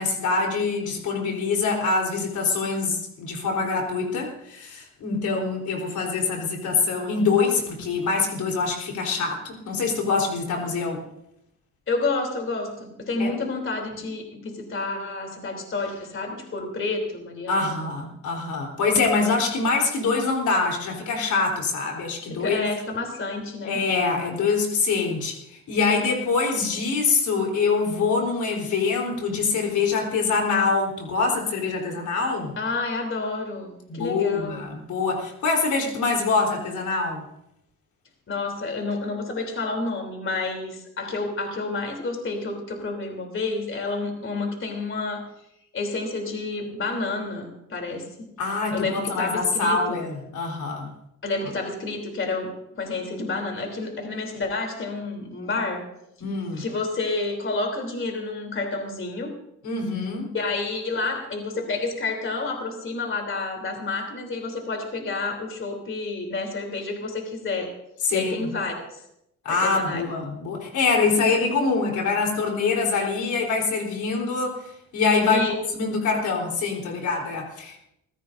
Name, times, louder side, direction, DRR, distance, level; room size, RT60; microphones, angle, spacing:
voice 1, 0.0-11.0 13.2-13.3 17.5-22.7 23.6-32.5 33.9-37.2 48.4-50.9 56.2-56.6 59.6-60.3 68.0-68.5 69.4-75.4 75.7-77.8, left 4 dB, 75° left, 0 dB, 3.8 m, -24 dB
voice 2, 11.9-17.8 22.3-23.8 32.6-34.7 38.3-45.3 45.7-48.3 48.7-49.8 51.2-55.9 56.5-59.4 60.3-67.7 68.1-69.0 69.5-70.1 75.2-75.5, left 3 dB, 40° left, 3 dB, 3.3 m, -29 dB
25.0 x 15.5 x 2.6 m, 0.79 s
cardioid pair, 90°, 30 cm